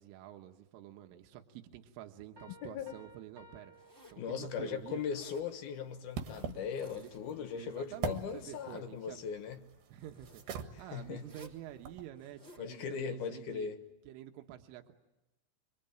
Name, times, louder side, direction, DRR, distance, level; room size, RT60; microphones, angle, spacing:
voice 1, 0.0-5.0 6.8-7.1 7.5-9.2 9.9-13.7 14.1-14.9, right 12 dB, 85° right, 3.8 m, -49 dB
sound 1, 2.4-4.9, right 1 dB, 35° right, 2.1 m, -58 dB
voice 2, 2.6-3.0 4.2-9.6 10.7-11.3 12.6-13.8, left 7 dB, 65° left, 2.7 m, -39 dB
Zipper (clothing), 3.7-4.3 4.9-5.5 6.5-7.4 7.8-8.8 9.9-10.5 11.2-11.6 12.1-12.7, left 1 dB, 15° right, 2.5 m, -59 dB
sound 2, 4.4-12.1, right 7 dB, 60° right, 3.1 m, -45 dB
25.5 x 25.0 x 9.1 m
omnidirectional pair, 5.7 m